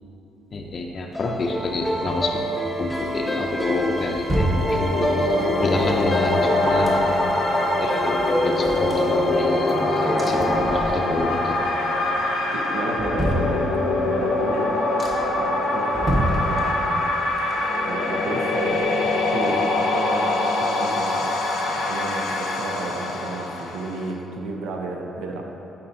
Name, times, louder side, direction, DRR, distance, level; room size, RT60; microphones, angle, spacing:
voice 1, 0.5-2.5 2.8-7.5 7.8-11.6 17.5-17.6, left 2 dB, 45° left, 1 dB, 0.4 m, -29 dB
sound 1, 1.1-12.4, equal, 5° left, 0.8 m, -28 dB
sound 2, 3.5-5.3 6.0-7.4 7.8-7.9 8.1-9.7 10.2-11.3 11.7-12.2 12.6-14.1 14.5-14.6 15.0-15.5 15.9-17.1 17.4-19.2 19.5-19.6, right 1 dB, 30° right, 1.1 m, -29 dB
sound 3, 4.3-24.1, left 2 dB, 90° left, 0.7 m, -24 dB
voice 2, 12.5-13.6 14.1-14.7 15.3-17.0 17.8-25.4, right 2 dB, 85° right, 1 dB, 0.6 m, -32 dB
8.6 x 4.2 x 2.7 m, 2.8 s
cardioid pair, 90°, 0 cm